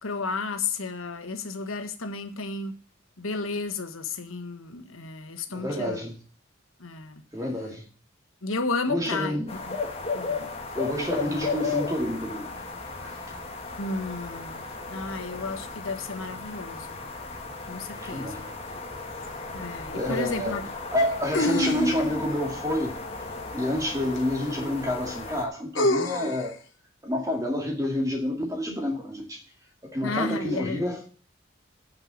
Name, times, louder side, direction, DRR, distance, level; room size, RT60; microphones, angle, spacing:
voice 1, 0.0-2.7 3.2-6.0 6.8-7.2 8.4-9.4 9.7-9.8 10.1-10.5 13.8-17.0 17.7-18.4 19.5-20.6 30.0-31.1, left 3 dB, 90° left, 1.4 m, -33 dB
voice 2, 5.5-6.1 7.3-7.8 8.9-9.5 10.7-12.5 13.0-13.2 17.9-18.5 19.8-20.6 20.9-23.0 23.5-26.6 27.0-29.4 29.8-31.0, left 1 dB, 15° right, 2.1 m, -28 dB
sound 1, 9.5-25.5, left 4 dB, 30° left, 1.6 m, -35 dB
sound 2, 19.2-19.3 21.3-22.3 24.2-24.3 25.8-26.5, left 2 dB, 70° left, 1.2 m, -26 dB
9.1 x 5.7 x 7.3 m
head